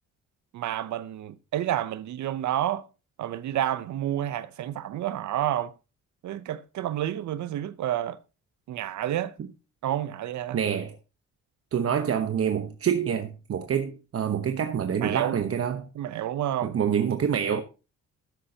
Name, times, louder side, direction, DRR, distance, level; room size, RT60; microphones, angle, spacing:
voice 1, 0.5-2.9 3.2-5.7 6.2-8.2 8.7-9.3 9.8-10.6 15.0-15.4 15.9-16.8, right 12 dB, 70° right, 0.8 m, -29 dB
voice 2, 10.5-10.9 11.7-15.9 16.6-17.6, right 8 dB, 50° right, 1.0 m, -26 dB
13.0 x 10.0 x 2.9 m
cardioid pair, 90°, 30 cm